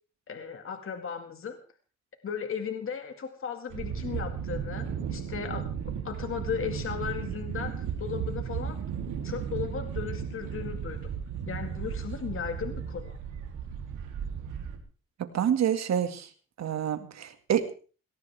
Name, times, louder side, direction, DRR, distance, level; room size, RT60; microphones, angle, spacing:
voice 1, 0.3-1.6 2.2-5.7 6.0-8.8 9.2-11.1 11.5-13.2, left 7 dB, 45° left, 6 dB, 2.1 m, -36 dB
sound 1, 3.7-14.8, right 7 dB, 85° right, 3.4 m, -35 dB
voice 2, 15.3-16.3 16.6-17.8, right 9 dB, 60° right, 8 dB, 2.2 m, -27 dB
19.0 x 18.0 x 3.5 m, 0.38 s
cardioid pair, 90°, 30 cm